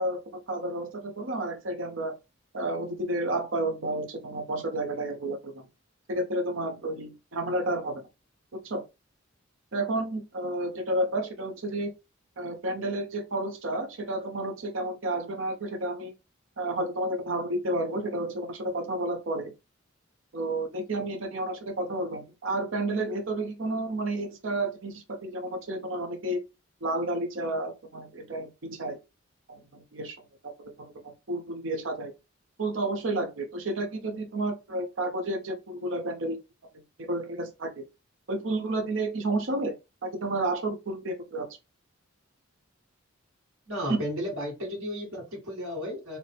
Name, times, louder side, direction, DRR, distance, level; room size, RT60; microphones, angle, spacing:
voice 1, 0.0-2.2 2.5-5.7 6.1-8.1 8.6-8.8 9.7-11.9 12.4-16.1 16.6-19.5 20.3-26.4 26.8-29.0 29.5-30.2 30.4-32.1 32.6-36.4 37.0-37.9 38.3-39.8 40.0-41.5, right 1 dB, 65° right, 0.7 m, -31 dB
voice 2, 43.7-46.2, equal, 85° right, 1.5 m, -34 dB
4.1 x 2.1 x 3.3 m
head